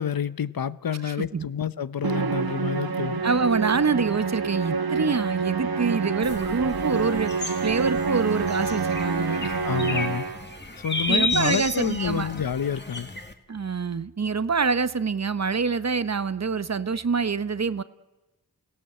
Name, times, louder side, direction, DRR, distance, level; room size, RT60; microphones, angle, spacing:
voice 1, 0.0-3.2 9.6-10.2 10.8-13.1, left 8 dB, 75° left, 0.8 m, -28 dB
Musical instrument, 2.0-10.5, right 5 dB, 80° right, 1.3 m, -27 dB
voice 2, 3.2-7.3 7.6-9.5 11.1-12.3 13.5-17.8, right 5 dB, 50° right, 0.9 m, -25 dB
sound 1, 6.2-13.3, left 2 dB, 30° left, 1.9 m, -33 dB
29.0 x 17.0 x 7.7 m
wide cardioid pair, 65°, 36 cm